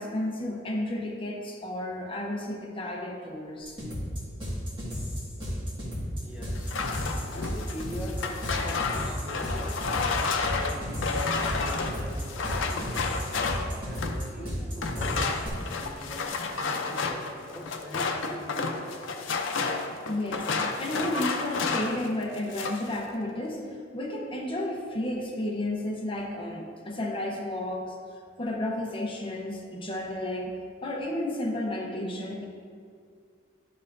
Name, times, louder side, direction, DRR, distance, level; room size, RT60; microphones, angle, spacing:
voice 1, 0.0-3.8 9.8-9.9 20.1-23.6 23.9-28.0 28.4-32.5, left 1 dB, 30° left, 0 dB, 0.8 m, -32 dB
sound 1, 3.6-15.5, equal, 25° right, 1.8 m, -33 dB
voice 2, 6.2-9.9 10.5-13.0 13.8-19.1, equal, 10° right, -4 dB, 1.1 m, -43 dB
sound 2, 6.5-14.3 14.8-22.1 22.3-22.9, left 4 dB, 85° left, 0.6 m, -31 dB
10.5 x 5.5 x 2.6 m, 2.2 s
head